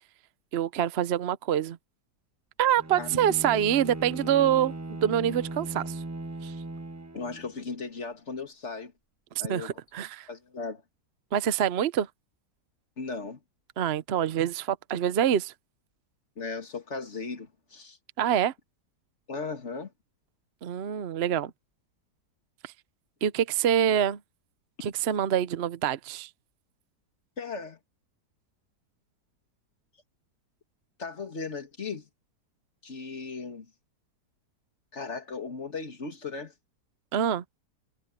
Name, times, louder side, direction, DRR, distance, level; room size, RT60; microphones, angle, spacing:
voice 1, 0.5-1.8 2.6-4.7 5.0-6.0 6.4-6.5 9.5-10.3 11.3-12.1 13.8-15.5 18.2-18.5 20.6-21.5 22.6-22.7 23.2-24.2 24.8-26.3 37.1-37.4, right 10 dB, 55° right, 0.7 m, -26 dB
Bowed string instrument, 2.8-7.6, right 2 dB, 15° right, 0.8 m, -38 dB
voice 2, 7.1-8.9 9.4-9.7 10.3-10.8 13.0-13.4 16.4-18.0 19.3-19.9 27.4-27.8 31.0-32.1 32.8-33.7 34.9-36.5, left 4 dB, 40° left, 2.6 m, -37 dB
omnidirectional pair, 1.8 m